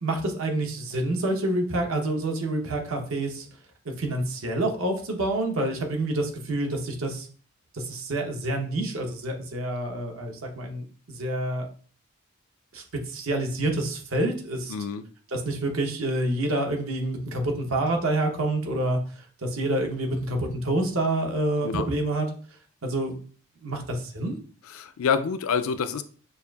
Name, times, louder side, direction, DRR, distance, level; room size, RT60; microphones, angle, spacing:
voice 1, 0.0-3.5 4.0-7.3 7.7-11.7 12.7-14.7 15.3-19.0 19.4-22.3 22.8-23.2 23.6-24.4, right 1 dB, 75° right, 2 dB, 0.9 m, -27 dB
voice 2, 14.7-15.0 21.6-21.9 24.7-26.0, left 6 dB, 80° left, 11 dB, 0.4 m, -27 dB
6.6 x 2.5 x 2.3 m, 0.43 s
head